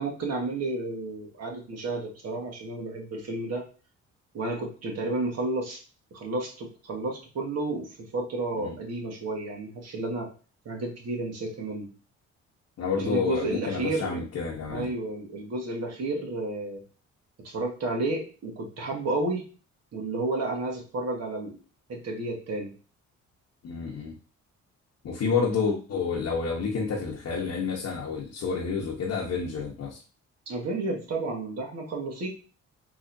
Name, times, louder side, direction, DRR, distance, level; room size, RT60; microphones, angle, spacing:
voice 1, 0.0-3.7 4.3-5.8 6.1-10.3 10.6-11.9 13.0-14.2 14.7-16.8 17.4-19.5 19.9-21.5 21.9-22.7 30.5-32.3, right 2 dB, 55° right, 0 dB, 1.5 m, -31 dB
voice 2, 12.8-14.9 23.6-24.1 25.0-30.0, left 5 dB, 55° left, -3 dB, 1.0 m, -29 dB
3.9 x 3.0 x 2.6 m, 0.36 s
cardioid pair, 90°, 30 cm